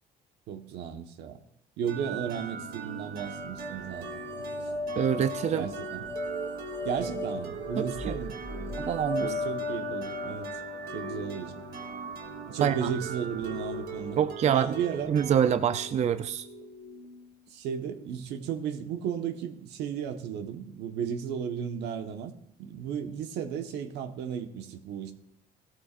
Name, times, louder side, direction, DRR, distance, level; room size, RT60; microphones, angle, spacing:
voice 1, 0.5-1.4 1.8-4.5 5.5-6.0 6.8-8.8 9.2-10.5 10.9-11.5 12.4-14.2 14.4-15.1 17.5-22.3 22.6-25.1, right 8 dB, 85° right, 1.3 m, -34 dB
sound 1, 1.9-17.5, right 4 dB, 60° right, 1.7 m, -40 dB
sound 2, 3.3-12.4, left 3 dB, 15° left, 2.1 m, -37 dB
voice 2, 5.0-5.7 7.8-8.2 8.8-9.3 12.6-12.9 14.2-14.7 15.1-16.5, right 8 dB, 40° right, 0.5 m, -26 dB
17.0 x 13.0 x 2.5 m
cardioid pair, 110°, 17 cm